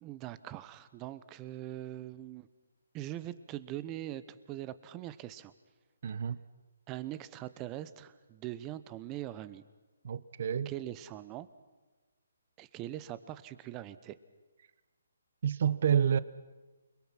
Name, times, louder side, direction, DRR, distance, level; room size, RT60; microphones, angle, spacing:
voice 1, 0.0-2.5 2.9-5.5 6.9-9.6 10.7-11.5 12.6-14.2, right 13 dB, 20° right, 0.9 m, -42 dB
voice 2, 6.0-6.4 10.0-10.7 15.4-16.2, right 8 dB, 50° right, 0.8 m, -28 dB
29.0 x 22.0 x 5.9 m
hypercardioid pair, 150°, 0 cm